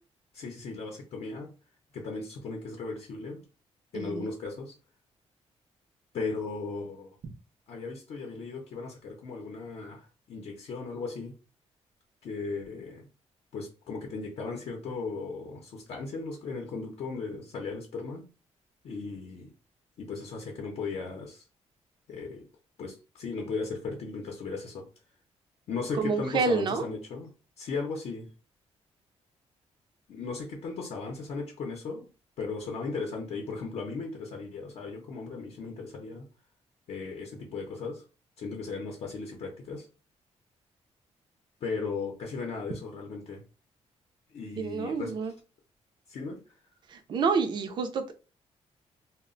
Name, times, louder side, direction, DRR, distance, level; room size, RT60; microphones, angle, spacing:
voice 1, 0.3-1.5 1.9-3.4 3.9-4.7 6.1-7.2 7.7-11.4 12.2-13.1 13.5-18.3 18.8-19.5 20.0-21.4 22.1-22.5 22.8-24.9 25.7-27.3 27.6-28.3 30.1-32.1 32.4-36.3 36.9-38.0 38.4-39.9 41.6-43.4 44.3-45.1 46.1-46.4, left 4 dB, 65° left, 0.6 m, -36 dB
voice 2, 3.9-4.3 25.9-26.8 44.6-45.3 46.9-48.1, right 4 dB, 40° right, 0.4 m, -28 dB
2.1 x 2.0 x 3.7 m
cardioid pair, 160°, 11 cm